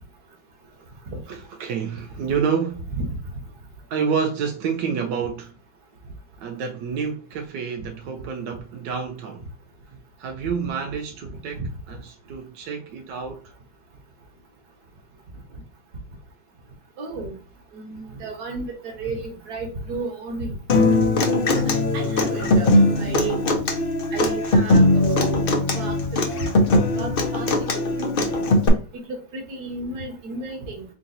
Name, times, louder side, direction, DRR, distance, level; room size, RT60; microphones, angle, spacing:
voice 1, 1.3-2.9 3.9-5.5 6.4-9.4 10.2-13.5, right 6 dB, 90° right, 1.3 m, -28 dB
voice 2, 17.0-17.4 17.7-20.6 21.7-23.4 24.1-25.5 25.7-26.0 26.9-27.5 28.0-28.5 29.1-30.8, right 3 dB, 65° right, 1.8 m, -32 dB
Human voice / Acoustic guitar, 20.7-28.7, left 2 dB, 50° left, 0.6 m, -20 dB
3.9 x 3.8 x 2.6 m
omnidirectional pair, 1.8 m